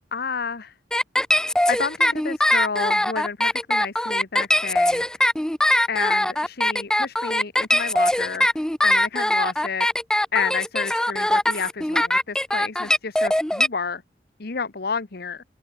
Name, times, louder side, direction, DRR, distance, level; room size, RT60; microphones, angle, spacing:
voice 1, 0.1-0.7 1.7-5.1 5.9-8.5 8.8-9.9 10.3-14.0 14.4-15.4, left 5 dB, 60° left, 1.1 m, -30 dB
sound 1, 0.9-13.7, left 1 dB, 5° left, 0.5 m, -21 dB
open air
head